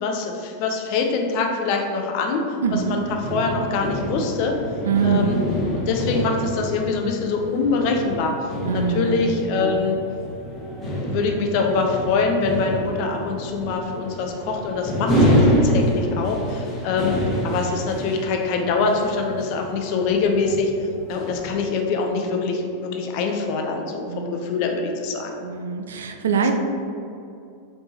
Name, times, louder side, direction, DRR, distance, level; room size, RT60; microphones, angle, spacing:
voice 1, 0.0-2.4 2.7-4.6 5.0-5.4 5.7-8.3 8.7-10.0 11.0-17.2 17.4-25.4 26.4-26.5, left 4 dB, 45° left, 2 dB, 0.5 m, -24 dB
sound 1, 2.6-21.6, equal, 25° left, 1.2 m, -27 dB
voice 2, 2.6-3.0 4.9-5.9 8.6-9.2 24.1-24.3 25.4-26.5, right 6 dB, 65° right, 5 dB, 0.3 m, -23 dB
4.2 x 3.5 x 2.8 m, 2.6 s
figure-of-eight pair, 90°, 0 cm